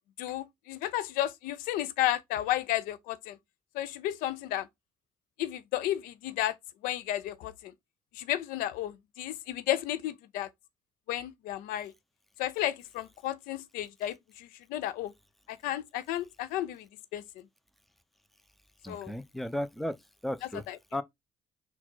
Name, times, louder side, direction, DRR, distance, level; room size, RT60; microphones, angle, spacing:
voice 1, 0.2-3.4 3.7-4.7 5.4-6.5 6.8-7.7 8.2-10.5 11.1-11.9 12.4-15.1 15.5-16.9 17.1-17.2 18.9-19.1 20.4-20.8, left 13 dB, 80° left, 0.5 m, -33 dB
voice 2, 18.8-20.0 20.2-20.6 20.9-21.0, left 1 dB, ahead, 0.6 m, -34 dB
3.9 x 2.4 x 4.4 m
supercardioid pair, 60°, 14 cm